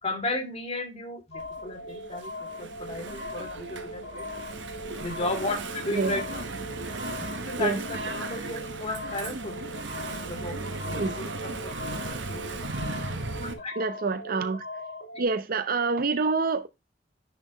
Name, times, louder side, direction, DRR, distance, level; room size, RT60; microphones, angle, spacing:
voice 1, 0.0-4.2 5.0-6.5 7.2-9.6 10.2-10.6 10.9-11.7 12.0-12.6 13.6-13.8, left 2 dB, 35° left, 2.3 m, -34 dB
sound 1, 1.3-15.3, left 1 dB, 90° left, 2.5 m, -40 dB
Engine / Mechanisms, 1.4-13.5, right 3 dB, 75° right, 1.2 m, -37 dB
voice 2, 13.8-14.6 15.2-16.7, right 4 dB, 50° right, 0.7 m, -26 dB
10.0 x 4.1 x 2.9 m
head